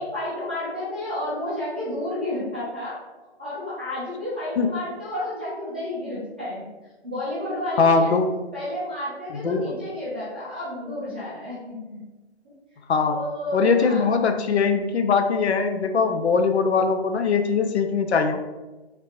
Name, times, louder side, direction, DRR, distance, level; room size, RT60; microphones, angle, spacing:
voice 1, 0.0-3.0 3.4-6.7 7.0-8.1 8.5-11.8 13.1-14.1, left 1 dB, 10° right, -12 dB, 0.4 m, -31 dB
voice 2, 7.8-8.3 9.4-9.7 12.9-13.2 13.5-18.4, left 5 dB, 90° left, 6 dB, 0.5 m, -21 dB
3.3 x 2.4 x 2.8 m, 1.1 s
hypercardioid pair, 150°, 32 cm